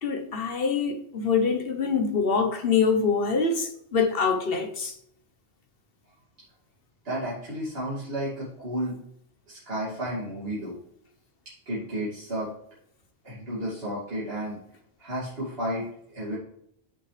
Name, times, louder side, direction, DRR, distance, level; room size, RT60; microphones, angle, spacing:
voice 1, 0.0-4.9, left 5 dB, 60° left, 1.3 m, -25 dB
voice 2, 7.0-9.0 9.5-10.8 11.7-12.5 13.2-14.6 15.0-16.4, equal, 60° right, 2.9 m, -32 dB
9.1 x 7.5 x 3.4 m
omnidirectional pair, 1.1 m